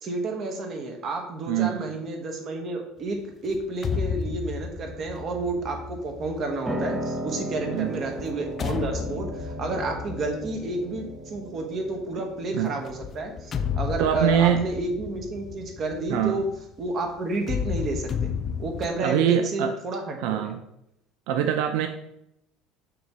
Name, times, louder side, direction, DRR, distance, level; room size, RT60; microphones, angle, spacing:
voice 1, 0.0-16.5 16.8-18.3 18.6-20.5, right 2 dB, 35° right, 3 dB, 1.2 m, -31 dB
voice 2, 1.5-1.9 7.7-8.0 12.1-12.2 12.5-12.7 14.0-14.7 16.1-16.4 19.0-19.7 20.2-20.6 21.3-21.9, right 10 dB, 75° right, 6 dB, 0.5 m, -24 dB
sound 1, 3.5-7.2 8.0-11.6 12.9-16.9 17.4-18.9, left 7 dB, 25° left, 0.3 m, -33 dB
Piano, 6.7-16.6, right 1 dB, 10° right, 0.6 m, -37 dB
6.8 x 3.1 x 6.0 m, 0.79 s
cardioid pair, 170°, 0 cm